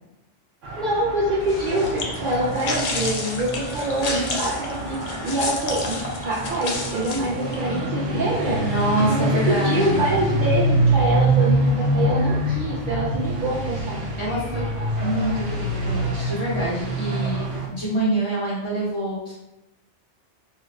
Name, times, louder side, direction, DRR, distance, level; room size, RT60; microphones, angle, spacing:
sound 1, 0.6-17.7, right 1 dB, 80° right, 1.0 m, -25 dB
voice 1, 0.8-8.6 9.1-14.0, right 1 dB, 55° right, -6 dB, 0.6 m, -25 dB
sound 2, 1.4-7.6, left 3 dB, 55° left, 0.4 m, -31 dB
voice 2, 8.6-10.0 14.2-14.6 15.0-19.3, right 1 dB, 25° left, -9 dB, 1.2 m, -26 dB
3.0 x 2.4 x 3.2 m, 0.92 s
omnidirectional pair, 1.2 m